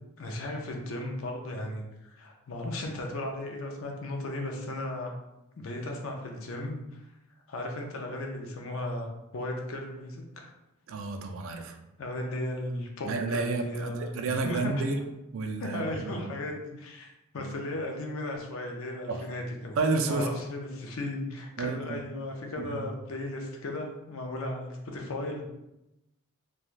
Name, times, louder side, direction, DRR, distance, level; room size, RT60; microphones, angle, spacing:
voice 1, 0.2-5.1 5.6-7.0 7.5-10.5 12.0-14.7 15.6-19.8 20.1-25.4, left 1 dB, 65° left, 2 dB, 0.5 m, -36 dB
voice 2, 10.9-11.8 13.0-15.0 15.3-16.3 17.4-17.5 19.1-19.2 19.8-20.3 21.6-22.0 22.6-22.9, right 3 dB, 60° right, 4 dB, 0.3 m, -31 dB
3.1 x 2.2 x 2.4 m, 0.92 s
head